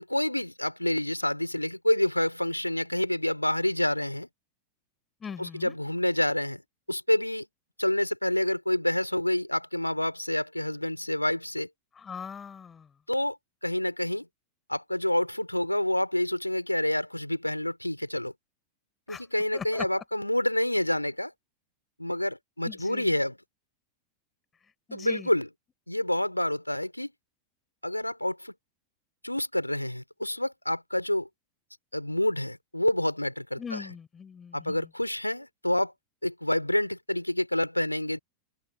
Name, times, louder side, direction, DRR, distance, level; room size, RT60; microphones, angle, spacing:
voice 1, 0.0-4.3 5.4-6.6 6.9-7.5 7.8-11.7 13.1-13.4 13.6-14.3 14.7-18.3 19.1-21.3 22.0-23.4 24.9-25.5 25.9-27.1 27.8-28.5 29.2-31.3 31.9-33.8 34.5-35.9 36.2-38.2, left 1 dB, 85° left, 4.6 m, -28 dB
voice 2, 5.2-5.7 11.9-12.9 19.1-19.3 19.5-20.0 22.6-23.2 24.9-25.3 33.6-34.9, left 6 dB, 20° left, 5.6 m, -41 dB
figure-of-eight pair, 90°, 0 cm